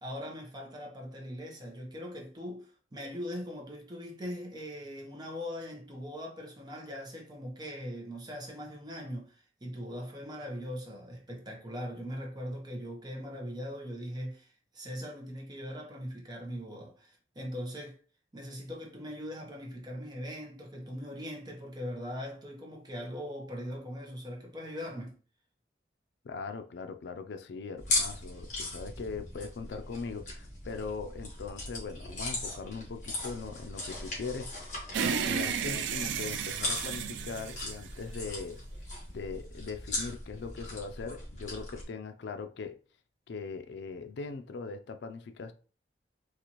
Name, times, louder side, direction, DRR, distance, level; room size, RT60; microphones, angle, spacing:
voice 1, 0.0-18.0 18.3-25.2, equal, 25° right, 0.8 m, -40 dB
voice 2, 26.2-34.7 35.0-38.6 39.1-42.8 43.3-45.5, left 4 dB, 75° left, 0.4 m, -40 dB
sound 1, 27.8-41.8, left 2 dB, 45° left, 1.4 m, -38 dB
sound 2, 34.9-38.4, right 7 dB, 85° right, 0.3 m, -33 dB
4.0 x 2.5 x 2.9 m
head